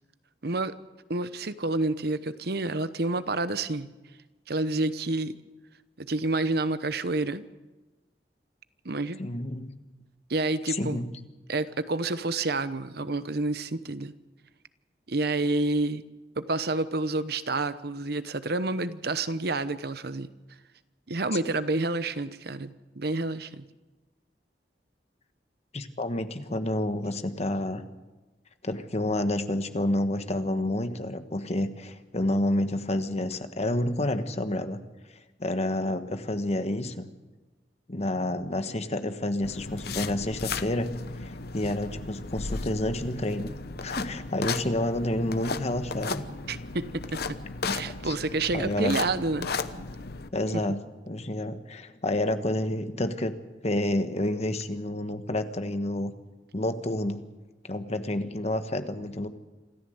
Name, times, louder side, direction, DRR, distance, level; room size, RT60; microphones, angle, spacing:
voice 1, 0.4-0.7 1.1-3.9 4.5-5.4 6.0-7.4 8.8-9.2 10.3-11.1 11.5-14.1 15.1-16.0 16.4-20.3 21.1-23.6 46.5-47.4 47.7-49.5, right 2 dB, 60° right, 13 dB, 1.0 m, -29 dB
voice 2, 9.2-9.7 10.7-11.1 25.7-27.8 28.6-34.8 35.4-37.1 37.9-40.9 41.2-43.5 43.8-46.2 47.6-48.2 48.5-49.0 50.3-53.3 53.6-56.1 56.5-57.2 57.6-59.3, left 1 dB, 40° left, 9 dB, 1.3 m, -29 dB
sound 1, 39.4-50.3, left 4 dB, 60° left, 0.9 m, -35 dB
26.5 x 14.0 x 8.0 m, 1.2 s
head